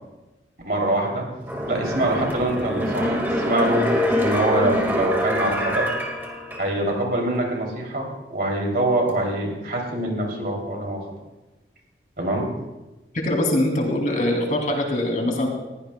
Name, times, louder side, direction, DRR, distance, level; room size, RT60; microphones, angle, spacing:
voice 1, 0.6-1.3 1.7-3.2 3.4-5.9 6.6-11.0 12.2-12.5, right 1 dB, 55° right, 0 dB, 2.9 m, -24 dB
sound 1, 1.4-7.0 7.4-7.5, equal, 10° right, 1.8 m, -25 dB
voice 2, 13.2-15.5, left 1 dB, 45° left, 1 dB, 2.8 m, -22 dB
21.0 x 16.0 x 2.3 m, 1.1 s
head